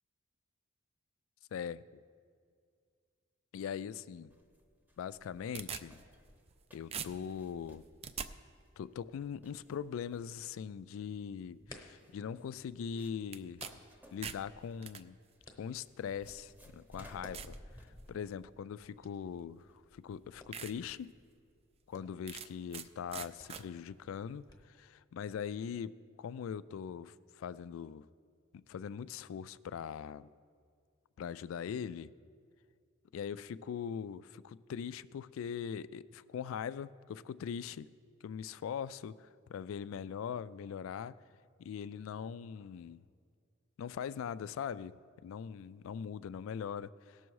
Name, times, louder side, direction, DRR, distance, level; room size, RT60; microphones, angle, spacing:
voice 1, 1.5-1.8 3.5-4.3 5.0-6.0 6.7-7.8 8.8-13.7 14.1-15.1 15.6-17.5 18.1-21.1 21.9-28.1 28.5-30.3 31.2-32.1 33.1-37.9 38.2-41.1 41.6-43.0 43.8-47.2, left 7 dB, 85° left, 18 dB, 0.3 m, -41 dB
sound 1, 4.3-21.1, equal, 10° right, 0.8 m, -58 dB
sound 2, 5.1-6.6 6.9-8.3 13.3-13.7 14.0-15.0 15.9-16.0 16.6-16.7 17.3-17.6 18.1-18.4 19.6-19.7 20.1-20.2 20.5-20.7 21.2-21.3 22.3-22.9 23.1-23.6, right 7 dB, 30° right, 0.3 m, -43 dB
sound 3, 11.3-24.5, left 2 dB, 20° left, 1.0 m, -60 dB
18.0 x 6.1 x 4.7 m, 2.1 s
head